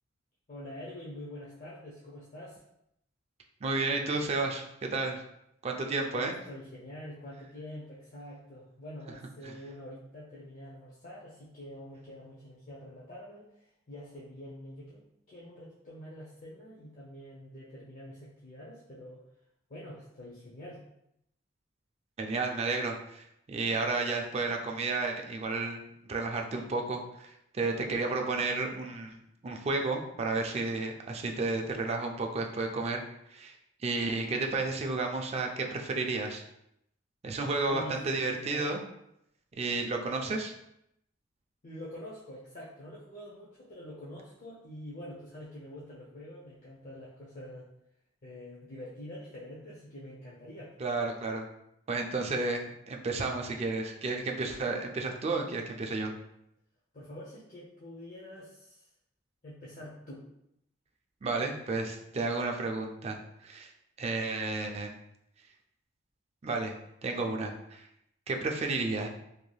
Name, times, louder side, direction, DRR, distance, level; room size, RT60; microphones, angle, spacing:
voice 1, 0.5-2.6 6.1-19.2 19.7-20.8 37.7-38.0 38.3-38.7 41.6-47.7 48.2-50.7 56.9-58.9 59.4-60.3, left 1 dB, 40° left, -7 dB, 0.6 m, -46 dB
voice 2, 3.6-5.2 5.6-6.3 9.5-9.6 22.2-29.2 29.4-33.0 33.3-33.5 33.8-36.4 37.2-38.8 39.5-40.5 50.8-51.5 51.9-56.1 61.2-63.7 64.0-65.0 66.4-66.7 67.0-67.9 68.3-69.1, right 3 dB, 35° right, 2 dB, 0.3 m, -32 dB
3.2 x 2.7 x 2.2 m, 0.79 s
head